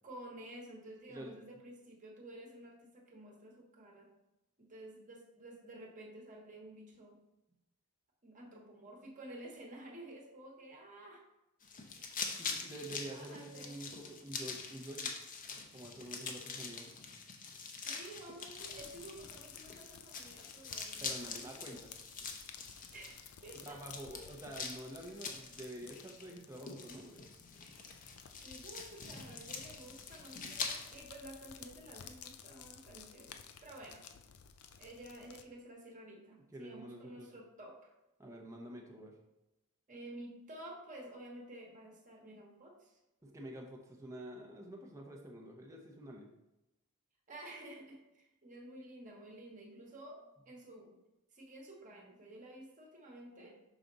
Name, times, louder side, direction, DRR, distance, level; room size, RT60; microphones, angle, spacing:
voice 1, 0.0-4.1 4.6-7.2 8.2-11.2 13.0-13.8 17.8-21.5 22.9-23.8 24.1-24.2 28.3-34.0 34.8-37.9 39.9-43.0 47.3-51.0 51.3-53.6, right 1 dB, 35° right, 0 dB, 1.2 m, -51 dB
sound 1, 11.6-31.0, left 5 dB, 40° left, 0.7 m, -45 dB
voice 2, 12.4-15.1 15.7-16.9 21.0-21.9 23.6-27.2 36.5-37.3 38.2-39.1 43.2-46.3, right 1 dB, 15° right, -1 dB, 0.7 m, -48 dB
sound 2, 18.6-35.4, left 8 dB, 75° left, 0.5 m, -55 dB
5.7 x 5.0 x 3.9 m, 0.94 s
head